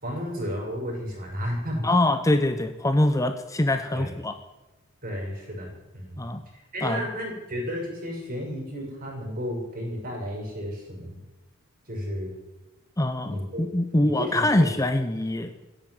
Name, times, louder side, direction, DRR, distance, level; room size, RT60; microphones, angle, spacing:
voice 1, 0.0-1.8 3.9-4.1 5.0-6.2 6.5-11.2 11.9-12.3 13.2-13.7 14.0-14.7, equal, 45° right, 0 dB, 6.6 m, -33 dB
voice 2, 1.8-4.4 6.2-6.4 6.8-7.0 13.0-15.5, left 1 dB, 15° left, 8 dB, 0.8 m, -24 dB
16.0 x 8.9 x 9.6 m, 1.1 s
head